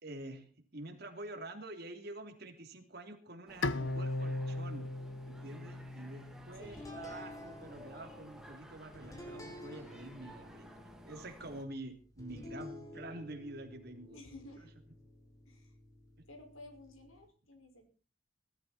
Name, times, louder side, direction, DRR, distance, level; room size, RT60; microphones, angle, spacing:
voice 1, 0.0-4.9 5.3-14.2, right 1 dB, 50° right, 5 dB, 3.1 m, -47 dB
sound 1, 3.5-11.6, right 1 dB, ahead, 2.2 m, -54 dB
Bowed string instrument, 3.6-6.9, left 2 dB, 65° left, 0.8 m, -37 dB
voice 2, 6.6-7.0 14.1-14.7 15.5-15.7 16.3-17.9, left 2 dB, 85° left, 5 dB, 5.3 m, -53 dB
sound 2, 6.6-17.3, left 2 dB, 15° left, 4.4 m, -52 dB
20.5 x 13.0 x 4.3 m, 0.39 s
head